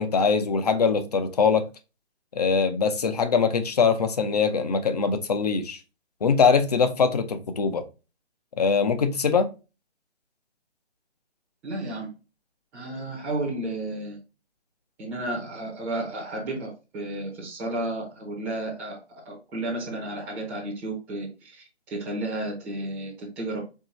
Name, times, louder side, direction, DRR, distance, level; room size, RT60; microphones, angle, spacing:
voice 1, 0.0-1.6 2.3-5.8 6.2-7.8 8.6-9.5, left 5 dB, 35° left, 0.6 m, -22 dB
voice 2, 11.6-12.1 12.7-14.2 15.0-23.6, right 2 dB, 5° right, 0.7 m, -32 dB
4.5 x 3.0 x 3.0 m
figure-of-eight pair, 155°, 33 cm